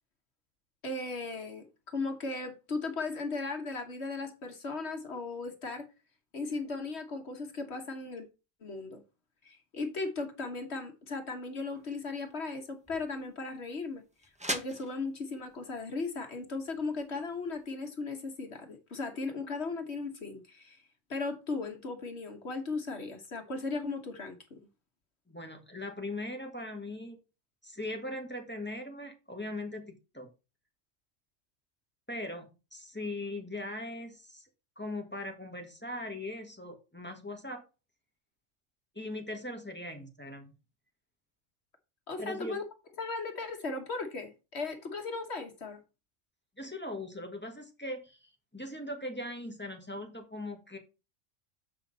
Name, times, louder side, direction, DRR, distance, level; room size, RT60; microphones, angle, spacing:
voice 1, 0.8-5.9 6.3-8.3 8.6-9.0 9.4-20.8 21.1-24.6 42.1-42.6 43.0-45.8, left 3 dB, 60° left, 1.5 m, -37 dB
sound 1, 11.7-17.7, equal, 5° right, 0.7 m, -44 dB
voice 2, 25.3-27.2 27.6-30.3 32.1-34.5 34.8-37.6 38.9-40.5 42.2-42.6 46.6-50.8, left 1 dB, 10° left, 1.4 m, -40 dB
7.5 x 5.8 x 4.0 m
omnidirectional pair, 1.3 m